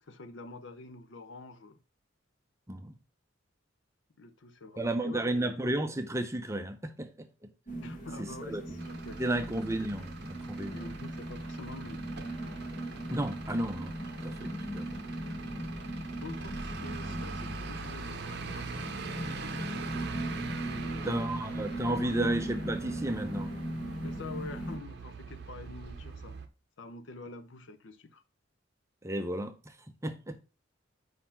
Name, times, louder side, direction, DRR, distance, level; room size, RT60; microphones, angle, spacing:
voice 1, 0.0-1.8 4.2-5.5 7.8-9.4 10.6-12.0 16.2-18.9 20.6-21.2 21.6-22.4 24.0-26.4 26.8-28.2, left 3 dB, 65° left, 0.7 m, -47 dB
voice 2, 4.8-7.5 8.2-8.6 9.2-10.8 13.1-15.0 21.0-23.5 29.0-29.8 30.0-30.4, right 1 dB, 15° right, 0.6 m, -33 dB
sound 1, 7.7-24.8, right 1 dB, 40° left, 1.5 m, -38 dB
Truck / Idling, 8.8-26.5, right 4 dB, 55° right, 0.7 m, -43 dB
5.0 x 4.2 x 5.6 m
head